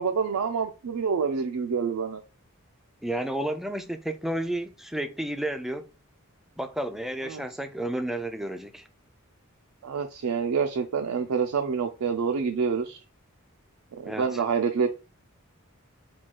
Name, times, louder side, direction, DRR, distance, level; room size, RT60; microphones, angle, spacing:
voice 1, 0.0-2.2 7.2-7.4 9.8-13.0 13.9-14.9, right 5 dB, 85° right, 0.4 m, -27 dB
voice 2, 3.0-5.8 6.6-8.8 14.0-14.4, right 1 dB, ahead, 0.3 m, -31 dB
4.4 x 2.3 x 4.4 m
head